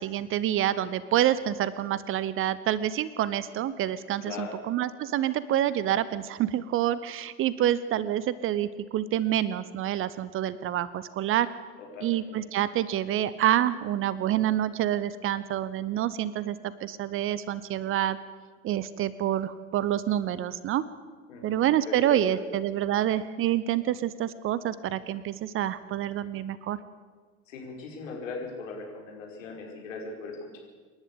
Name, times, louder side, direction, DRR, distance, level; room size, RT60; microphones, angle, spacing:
voice 1, 0.0-11.5 12.0-18.2 18.6-20.8 21.4-26.8, right 11 dB, 30° right, 16 dB, 0.8 m, -27 dB
voice 2, 4.2-4.6 11.8-12.2 21.3-22.4 27.5-30.6, left 4 dB, 65° left, 0 dB, 5.3 m, -39 dB
27.0 x 11.5 x 8.6 m, 1.5 s
figure-of-eight pair, 75°, 41 cm